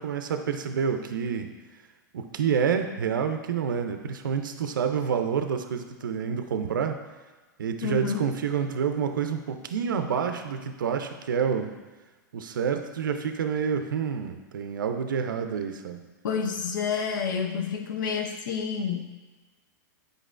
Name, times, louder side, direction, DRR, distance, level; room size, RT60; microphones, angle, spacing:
voice 1, 0.0-1.5 2.1-7.0 7.6-11.7 12.3-16.0, right 7 dB, 90° right, 7 dB, 0.5 m, -28 dB
voice 2, 7.8-8.3 16.2-19.0, left 6 dB, 80° left, 4 dB, 0.6 m, -29 dB
8.0 x 5.2 x 2.4 m, 1.3 s
hypercardioid pair, 115°, 10 cm